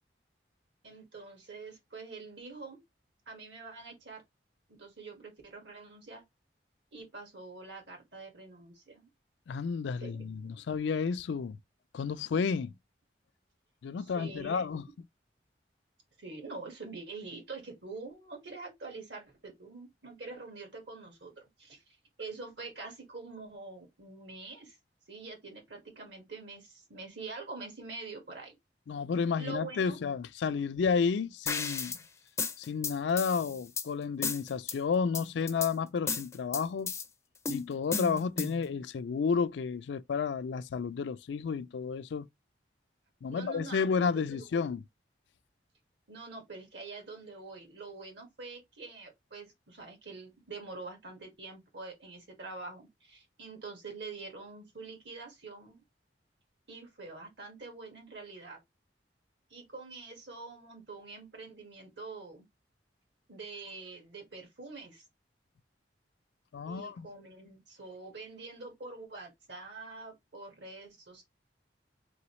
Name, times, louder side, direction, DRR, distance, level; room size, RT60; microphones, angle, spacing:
voice 1, 0.8-2.8 3.2-4.2 4.7-6.2 6.9-9.1 10.0-10.5 14.0-14.6 16.2-24.8 25.1-28.5 29.4-30.0 43.3-44.4 46.1-55.8 56.7-58.6 59.5-62.4 63.3-65.0 66.6-71.2, right 3 dB, 75° right, 1.7 m, -45 dB
voice 2, 9.5-11.6 11.9-12.7 13.8-14.9 28.9-31.9 32.6-36.9 37.5-42.3 43.2-44.8 66.5-67.1, left 5 dB, 75° left, 0.4 m, -31 dB
sound 1, 31.5-32.0 32.4-33.9 34.2-34.8 35.1-35.7 36.1-37.0 37.5-38.7, left 5 dB, 15° left, 0.4 m, -34 dB
3.9 x 3.4 x 3.0 m
head